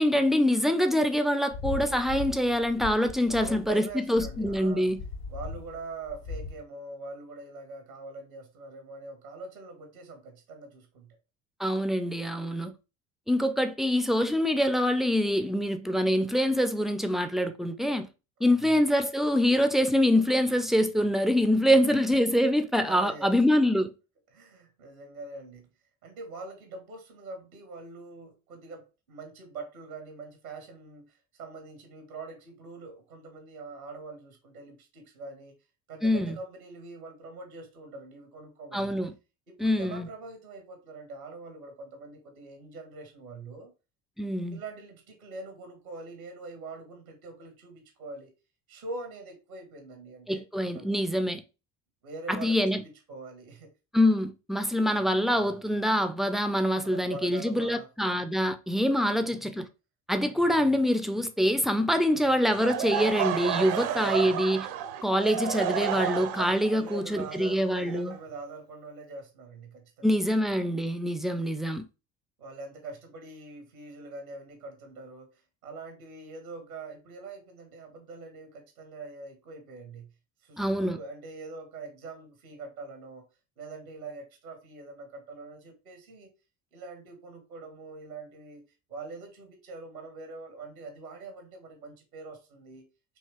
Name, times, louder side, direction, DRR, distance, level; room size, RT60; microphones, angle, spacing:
voice 1, 0.0-5.0 11.6-12.7 13.3-18.1 18.4-23.9 36.0-36.4 38.7-39.1 39.6-40.1 44.2-44.6 50.3-51.4 52.3-52.8 53.9-59.7 60.1-64.7 65.0-68.1 70.0-71.9 80.6-81.0, equal, ahead, 0.4 m, -25 dB
sound 1, 1.5-6.6, left 4 dB, 70° left, 0.9 m, -38 dB
voice 2, 3.2-4.9 5.3-11.1 18.4-18.7 21.6-21.9 22.8-23.3 24.3-25.7 26.0-35.6 35.9-39.0 39.5-43.7 44.5-48.3 48.7-50.4 50.7-50.9 52.0-53.7 56.8-57.9 59.0-59.4 62.1-62.4 63.6-64.4 66.7-70.1 71.4-71.5 72.4-75.3 75.6-80.1 80.4-83.3 83.6-86.3 86.7-88.6 88.9-92.8, right 3 dB, 90° right, 1.2 m, -43 dB
Laughter / Crowd, 62.5-68.4, right 9 dB, 55° right, 0.6 m, -31 dB
4.6 x 2.9 x 3.1 m
figure-of-eight pair, 60°, 42 cm